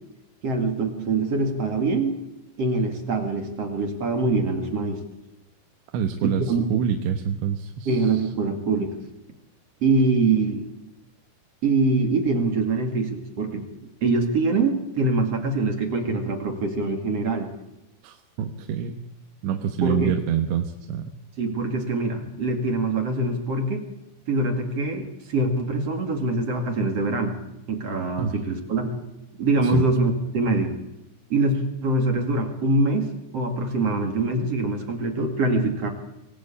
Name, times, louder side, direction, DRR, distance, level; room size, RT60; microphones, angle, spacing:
voice 1, 0.4-2.1 2.6-5.0 6.2-6.7 7.9-8.9 9.8-10.7 11.6-13.6 14.0-17.5 19.8-20.1 21.4-23.9 24.3-27.3 27.7-29.0 29.4-30.7 31.3-35.9, right 3 dB, 45° right, 4 dB, 2.4 m, -24 dB
voice 2, 5.9-8.3 18.0-19.0 19.4-21.2 28.2-28.4 29.6-29.9, right 8 dB, 75° right, 5 dB, 3.4 m, -27 dB
25.0 x 18.0 x 8.6 m, 0.93 s
omnidirectional pair, 5.5 m